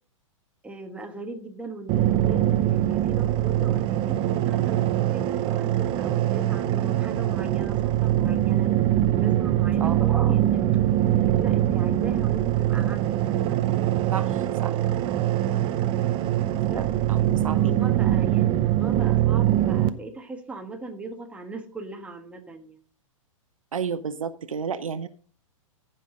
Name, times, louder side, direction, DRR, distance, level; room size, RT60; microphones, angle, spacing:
voice 1, 0.6-8.7 9.1-10.6 11.2-13.6 16.7-16.8 17.2-22.8, right 2 dB, 5° right, 3 dB, 1.3 m, -38 dB
sound 1, 1.9-19.9, right 12 dB, 30° right, 0.6 m, -23 dB
voice 2, 14.1-14.8 16.7-17.8 23.7-25.1, right 6 dB, 80° right, 12 dB, 0.8 m, -32 dB
14.0 x 5.7 x 3.7 m, 0.43 s
hypercardioid pair, 115°, 17 cm